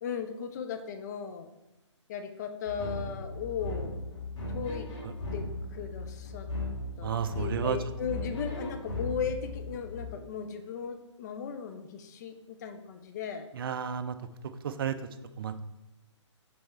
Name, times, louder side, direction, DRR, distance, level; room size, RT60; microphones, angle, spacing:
voice 1, 0.0-1.5 2.1-4.0 4.5-4.9 5.3-6.5 7.0-7.1 7.4-13.5, left 7 dB, 35° left, 7 dB, 0.6 m, -37 dB
sound 1, 2.7-10.1, left 2 dB, 60° left, 2.0 m, -37 dB
voice 2, 7.0-7.8 13.5-14.2 14.6-15.0 15.4-15.6, right 7 dB, 45° right, 11 dB, 0.5 m, -32 dB
6.4 x 3.5 x 4.3 m, 0.96 s
figure-of-eight pair, 140°, 16 cm